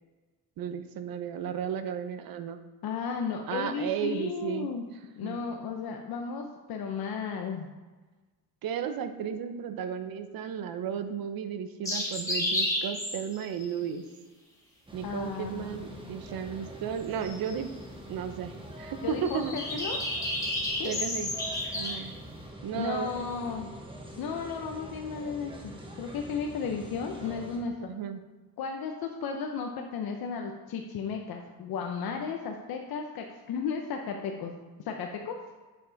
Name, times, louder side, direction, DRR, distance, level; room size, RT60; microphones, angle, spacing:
voice 1, 0.6-2.7 3.5-4.7 5.2-5.5 8.6-14.0 14.9-17.7 18.1-19.6 20.8-21.3 21.7-22.1 22.6-23.1 27.9-28.2, right 8 dB, 70° right, 9 dB, 0.8 m, -34 dB
voice 2, 2.8-4.9 5.2-7.7 15.0-16.1 19.0-20.0 20.8-20.9 22.7-23.8 24.2-27.8 28.6-34.5 34.8-35.4, left 5 dB, 75° left, 3 dB, 0.8 m, -34 dB
sound 1, 11.9-13.6 17.2-17.6 19.3-22.0, left 1 dB, 10° left, 2.0 m, -31 dB
sound 2, 14.9-27.6, right 1 dB, 15° right, 1.1 m, -44 dB
8.4 x 6.9 x 3.9 m, 1.3 s
cardioid pair, 170°, 37 cm